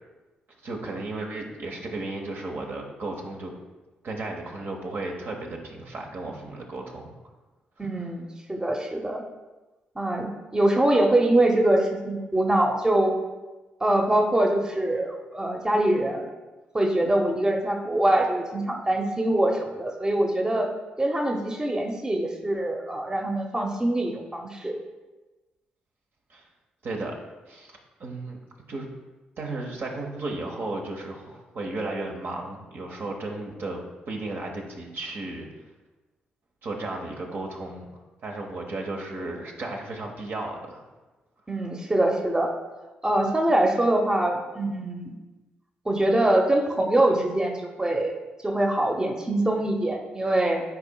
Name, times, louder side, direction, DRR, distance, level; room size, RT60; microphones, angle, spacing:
voice 1, 0.6-3.5 4.0-7.1 7.8-7.9 26.3-26.5 26.8-27.2 27.5-27.7 28.0-28.4 28.7-28.9 29.4-35.5 36.6-37.9 38.2-40.8, right 2 dB, 55° right, 0 dB, 1.0 m, -34 dB
voice 2, 7.8-9.2 10.0-13.1 13.8-16.3 16.7-20.7 21.0-24.7 41.5-42.5 43.0-45.1 45.9-48.2 48.4-50.6, right 1 dB, 15° right, 2 dB, 0.8 m, -24 dB
9.6 x 4.4 x 2.3 m, 1.2 s
hypercardioid pair, 40°, 4 cm